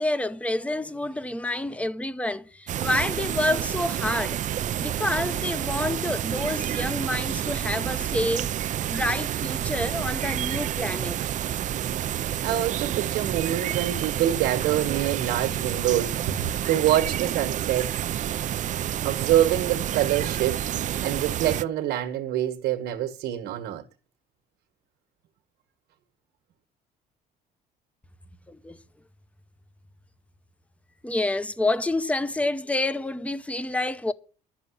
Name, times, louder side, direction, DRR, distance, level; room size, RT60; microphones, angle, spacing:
voice 1, 0.0-4.4 4.7-8.5 8.9-11.2 28.5-28.8 31.0-34.1, left 2 dB, 10° left, 0.8 m, -28 dB
sound 1, 2.7-21.6, right 11 dB, 50° right, 0.5 m, -29 dB
voice 2, 12.4-17.9 19.0-20.6 21.0-23.8, right 12 dB, 80° right, 1.5 m, -25 dB
10.5 x 6.9 x 8.4 m
cardioid pair, 110°, 17 cm